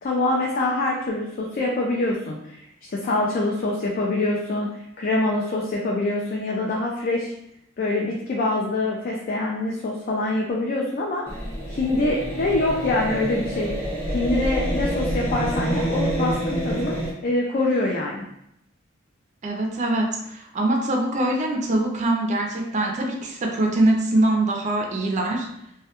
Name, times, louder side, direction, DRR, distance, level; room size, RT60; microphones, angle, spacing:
voice 1, 0.0-2.6 2.9-7.3 7.8-11.2 11.7-13.7 14.1-18.2, left 2 dB, 45° left, -2 dB, 0.4 m, -25 dB
sound 1, 11.3-17.1, right 1 dB, 10° left, 0.9 m, -27 dB
voice 2, 19.4-25.5, right 1 dB, 35° right, 1 dB, 0.4 m, -23 dB
2.2 x 2.1 x 2.8 m, 0.77 s
head